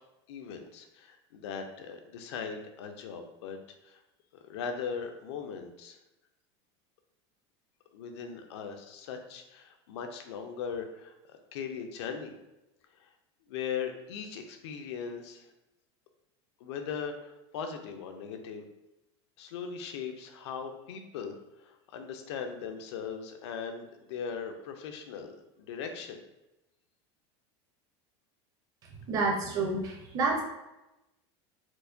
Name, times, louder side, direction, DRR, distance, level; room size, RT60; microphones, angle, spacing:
voice 1, 0.3-3.6 3.8-4.0 4.5-6.0 7.9-12.3 13.0-13.1 13.5-15.5 16.6-18.6 19.4-26.2, left 6 dB, 80° left, 5 dB, 0.6 m, -39 dB
voice 2, 29.1-30.4, right 3 dB, 25° right, 1 dB, 0.6 m, -29 dB
4.5 x 2.2 x 2.6 m, 0.96 s
supercardioid pair, 170°, 14 cm